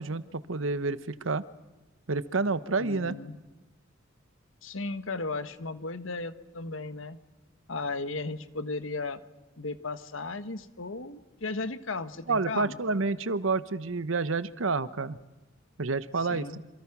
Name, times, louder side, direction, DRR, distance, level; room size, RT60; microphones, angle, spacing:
voice 1, 0.0-1.4 2.1-3.2 12.3-15.2 15.8-16.5, right 3 dB, 80° right, 15 dB, 1.0 m, -29 dB
voice 2, 2.8-3.4 4.6-7.2 7.7-9.2 9.6-12.8 16.2-16.6, left 3 dB, 80° left, 12 dB, 1.4 m, -35 dB
27.5 x 27.0 x 6.1 m, 1.1 s
head